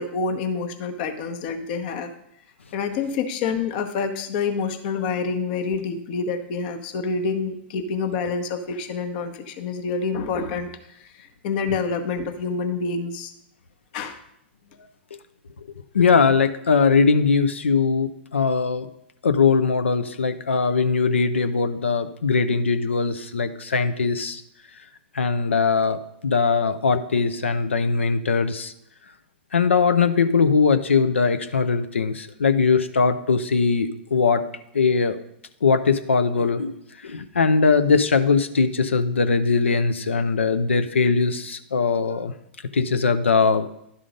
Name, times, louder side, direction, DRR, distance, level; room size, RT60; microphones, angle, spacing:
voice 1, 0.0-2.1 2.7-13.3 13.9-14.2, left 5 dB, 50° left, 7 dB, 0.9 m, -27 dB
voice 2, 15.9-18.9 19.2-24.4 25.1-28.7 29.5-34.4 34.7-35.2 35.6-36.7 37.0-42.3 42.7-43.7, left 5 dB, 90° left, 9 dB, 0.5 m, -20 dB
11.0 x 3.8 x 5.1 m, 0.78 s
hypercardioid pair, 115°, 6 cm